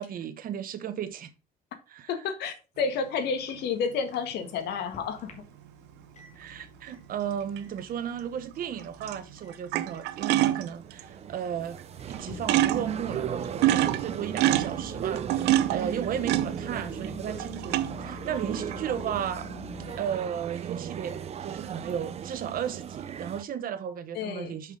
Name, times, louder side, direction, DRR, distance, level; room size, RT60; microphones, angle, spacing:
voice 1, 0.0-1.3 1.9-2.1 6.4-11.8 12.0-19.5 20.0-24.8, right 9 dB, 60° right, 1.1 m, -34 dB
voice 2, 2.1-5.4 24.1-24.5, left 6 dB, 80° left, 1.7 m, -30 dB
sound 1, 3.5-3.6 7.6-7.8 8.8-9.2 9.5-11.0 11.8-11.9 12.1-12.2 12.5-13.0 13.4-17.1 17.4-18.1 18.5-19.0, right 14 dB, 85° right, 0.6 m, -26 dB
Microwave oven, 4.1-23.4, left 3 dB, 45° left, 2.2 m, -48 dB
sound 2, 10.7-23.4, right 9 dB, 40° right, 0.6 m, -37 dB
5.8 x 5.7 x 5.2 m
cardioid pair, 110°, 17 cm